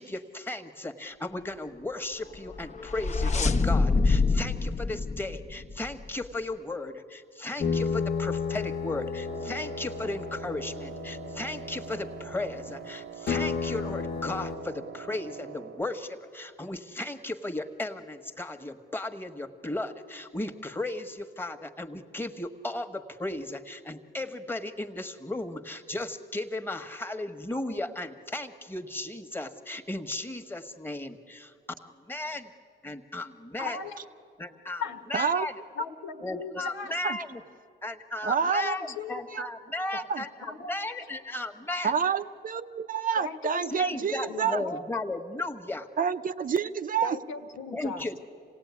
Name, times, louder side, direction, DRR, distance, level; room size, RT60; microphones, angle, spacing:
voice 1, 0.0-31.5 31.8-32.5 32.8-33.8 34.4-35.5 36.2-37.4 37.8-41.9 43.7-45.9 47.7-48.2, left 2 dB, 10° left, 6 dB, 1.4 m, -35 dB
sound 1, 2.5-6.1, left 3 dB, 35° left, 1.0 m, -26 dB
sound 2, 7.6-12.8 13.3-14.6, left 5 dB, 55° left, 1.4 m, -33 dB
Wind instrument woodwind instrument, 9.2-15.9, right 8 dB, 80° right, 0.9 m, -44 dB
voice 2, 33.6-34.0 34.8-35.0 35.7-37.0 39.0-39.2 40.4-40.7 43.2-43.7 44.3-44.8 47.0-48.2, left 5 dB, 85° left, 6 dB, 1.7 m, -37 dB
voice 3, 35.1-35.5 37.0-37.2 38.2-38.8 39.3-39.4 39.9-40.2 41.8-44.6 46.0-47.2, right 6 dB, 45° right, 10 dB, 0.7 m, -28 dB
26.5 x 17.5 x 9.7 m, 2.4 s
cardioid pair, 90°, 20 cm